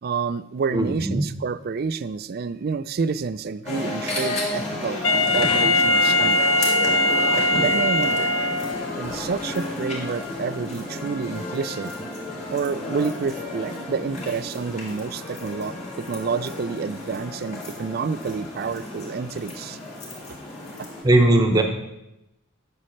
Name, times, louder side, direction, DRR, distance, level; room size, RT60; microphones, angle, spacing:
voice 1, 0.0-6.8 7.3-8.3 9.0-11.9 12.5-19.8 20.3-20.4 20.8-20.9, right 5 dB, 45° right, 15 dB, 0.3 m, -29 dB
voice 2, 0.7-1.3 21.0-21.6, right 1 dB, 20° right, 4 dB, 1.0 m, -18 dB
sound 1, 3.6-21.0, left 2 dB, 35° left, 3.9 m, -32 dB
Wind instrument woodwind instrument, 5.0-9.0, left 1 dB, 65° left, 0.7 m, -21 dB
12.5 x 7.5 x 3.2 m, 0.90 s
head